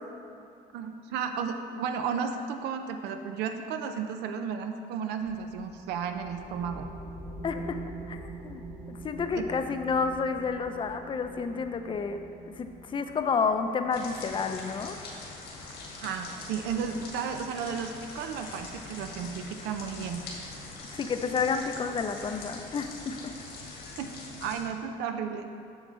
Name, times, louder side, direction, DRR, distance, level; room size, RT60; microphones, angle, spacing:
voice 1, 0.7-6.9 9.3-9.4 16.0-20.2 24.0-24.1 24.4-25.5, right 6 dB, 85° right, 6 dB, 0.5 m, -33 dB
sound 1, 5.2-15.2, right 2 dB, 5° left, 0.9 m, -44 dB
voice 2, 7.4-7.8 8.1-8.6 8.9-12.2 12.5-15.0 20.9-23.3, left 5 dB, 30° left, 7 dB, 0.5 m, -30 dB
sound 2, 13.9-24.6, left 3 dB, 80° left, 1.6 m, -43 dB
7.8 x 6.4 x 3.2 m, 2.5 s
cardioid pair, 110°, 17 cm